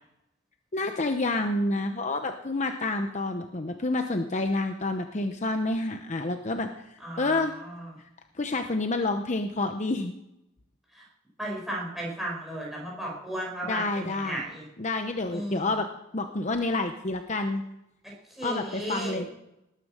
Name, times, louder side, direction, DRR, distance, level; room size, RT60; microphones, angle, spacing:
voice 1, 0.7-7.5 8.4-10.1 13.7-14.4 14.8-15.9 16.1-17.6 18.4-19.3, left 2 dB, 35° left, 6 dB, 0.8 m, -28 dB
voice 2, 7.0-7.9 10.9-11.0 11.4-14.6 15.3-15.7 18.3-19.2, right 1 dB, ahead, -4 dB, 6.4 m, -35 dB
19.5 x 9.9 x 6.4 m, 0.88 s
head